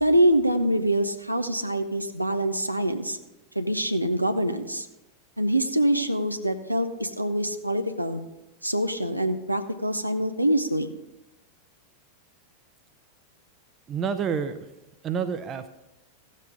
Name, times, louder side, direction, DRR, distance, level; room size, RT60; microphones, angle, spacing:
voice 1, 0.0-3.2 3.6-4.9 5.4-8.2 8.6-10.9, right 1 dB, 90° right, 7 dB, 0.6 m, -25 dB
voice 2, 13.9-14.6 15.0-15.7, right 6 dB, 25° right, 11 dB, 0.7 m, -28 dB
15.5 x 7.5 x 3.8 m, 0.98 s
figure-of-eight pair, 90°, 0 cm